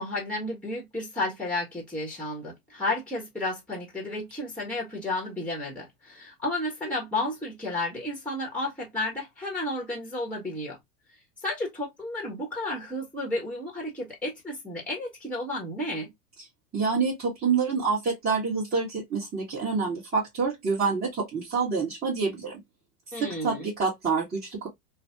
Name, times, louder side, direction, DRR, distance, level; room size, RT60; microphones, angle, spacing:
voice 1, 0.0-10.8 11.4-16.1 23.1-23.7, left 2 dB, 5° left, 1.3 m, -32 dB
voice 2, 16.7-22.6 23.1-24.7, right 5 dB, 20° right, 1.7 m, -27 dB
3.2 x 2.3 x 2.8 m
hypercardioid pair, 105°, 45 cm